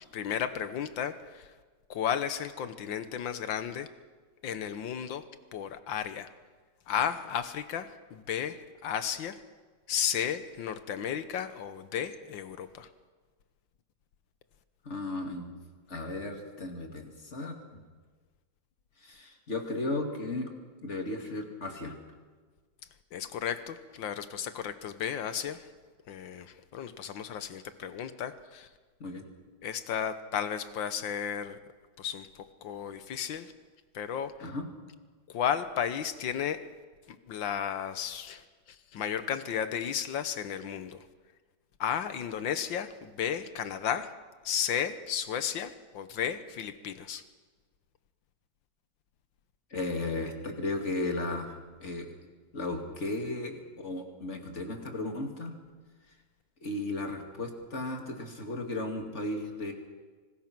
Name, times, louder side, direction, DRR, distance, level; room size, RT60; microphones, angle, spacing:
voice 1, 0.1-1.5 1.9-3.9 4.4-5.2 5.5-6.3 6.9-9.4 9.9-12.9 23.1-25.7 26.1-28.7 29.6-31.6 32.0-32.3 32.6-33.5 33.9-34.5 35.3-36.6 37.1-41.0 41.8-44.1 44.5-47.2, left 8 dB, 90° left, 11 dB, 1.8 m, -33 dB
voice 2, 14.8-15.6 15.9-17.6 19.0-20.5 20.8-22.0 29.0-29.3 34.4-34.7 49.7-52.1 52.5-55.5 56.6-59.7, left 2 dB, 40° left, 3 dB, 2.7 m, -35 dB
25.5 x 19.5 x 6.1 m, 1.4 s
omnidirectional pair, 2.0 m